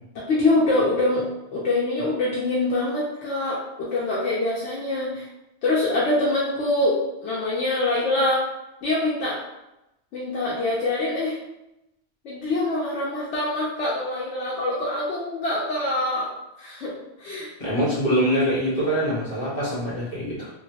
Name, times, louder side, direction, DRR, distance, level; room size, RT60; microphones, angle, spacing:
voice 1, 0.3-1.2 1.5-5.3 5.6-8.4 8.8-9.4 10.1-11.4 12.2-16.3 16.6-16.9 17.2-17.5, left 2 dB, 90° left, -6 dB, 1.0 m, -24 dB
voice 2, 17.6-20.5, equal, 55° left, -10 dB, 1.5 m, -24 dB
2.9 x 2.5 x 2.7 m, 0.90 s
omnidirectional pair, 1.2 m